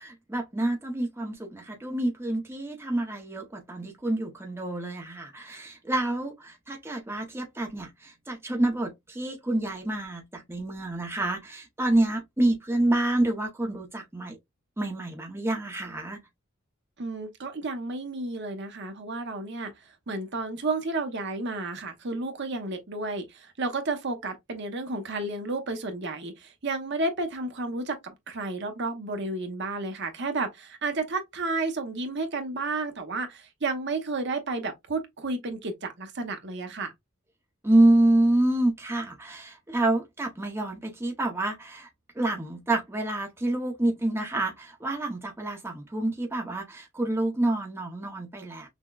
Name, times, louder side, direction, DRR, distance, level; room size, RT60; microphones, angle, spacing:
voice 1, 0.0-14.4 14.8-16.2 37.6-41.9 42.1-48.7, right 1 dB, 10° right, 0.7 m, -27 dB
voice 2, 17.0-19.7 20.1-28.0 28.3-36.9, right 3 dB, 55° right, 0.9 m, -32 dB
5.9 x 2.2 x 2.3 m
head